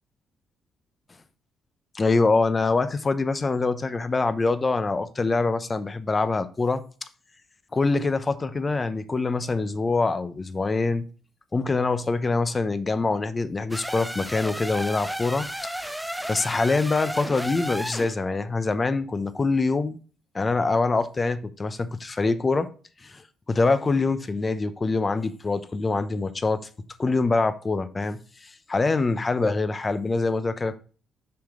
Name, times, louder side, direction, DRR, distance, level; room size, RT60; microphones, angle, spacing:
voice 1, 1.9-6.8 7.7-11.1 11.5-15.5 16.3-20.0 20.3-22.7 23.0-26.7 27.0-30.8, left 3 dB, 30° left, 13 dB, 0.7 m, -24 dB
sound 1, 13.7-18.2, equal, ahead, 0.4 m, -33 dB
6.9 x 5.0 x 3.7 m, 0.39 s
cardioid pair, 90°, 0 cm